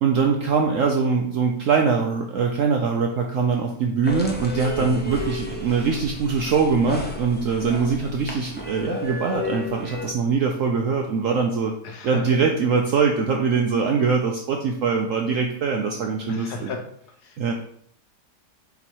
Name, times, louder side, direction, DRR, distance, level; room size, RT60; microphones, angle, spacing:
voice 1, 0.0-11.7 12.0-16.7 17.4-17.5, right 5 dB, 65° right, 2 dB, 0.8 m, -22 dB
sound 1, 4.0-10.1, left 2 dB, 10° left, 0.4 m, -33 dB
voice 2, 11.8-12.2 16.3-16.8, left 5 dB, 75° left, 4 dB, 1.4 m, -32 dB
7.8 x 2.9 x 4.4 m, 0.69 s
omnidirectional pair, 1.8 m